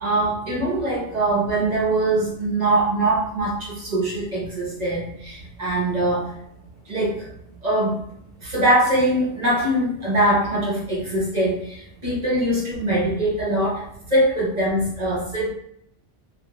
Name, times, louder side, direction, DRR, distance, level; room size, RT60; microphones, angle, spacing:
voice 1, 0.0-6.3 6.9-7.3 7.6-8.0 8.4-13.8 14.1-15.5, right 1 dB, 40° right, -6 dB, 0.8 m, -22 dB
2.4 x 2.3 x 2.9 m, 0.71 s
omnidirectional pair, 1.2 m